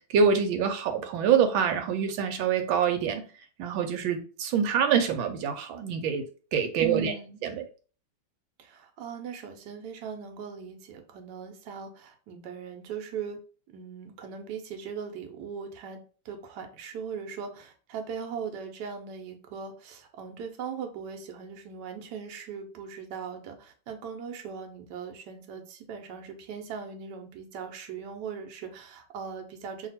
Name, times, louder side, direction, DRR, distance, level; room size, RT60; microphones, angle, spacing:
voice 1, 0.1-3.2 3.6-6.3 6.5-7.2 7.4-7.6, right 7 dB, 90° right, 1.4 m, -25 dB
voice 2, 6.8-7.4 8.6-13.4 13.7-16.0 16.2-29.9, right 6 dB, 70° right, 1.3 m, -39 dB
2.9 x 2.8 x 4.0 m
omnidirectional pair, 2.1 m